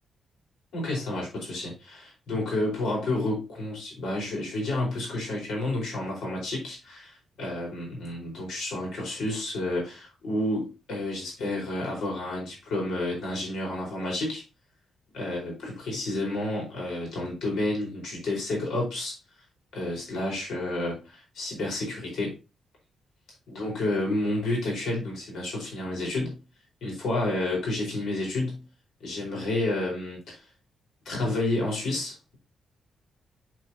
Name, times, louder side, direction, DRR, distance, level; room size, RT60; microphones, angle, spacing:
voice 1, 0.7-14.4 15.1-19.1 19.7-22.3 23.5-26.4 26.8-28.7 29.0-30.5 31.0-32.4, left 2 dB, 70° left, -1 dB, 4.6 m, -30 dB
7.8 x 6.6 x 2.8 m, 0.30 s
wide cardioid pair, 165°, 0 cm